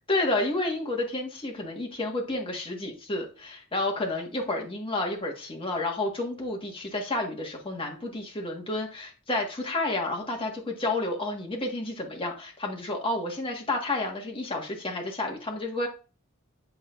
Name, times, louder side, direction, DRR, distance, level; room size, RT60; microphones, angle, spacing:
voice 1, 0.1-15.9, left 2 dB, 25° left, 1 dB, 1.6 m, -30 dB
7.7 x 6.0 x 2.5 m, 0.34 s
head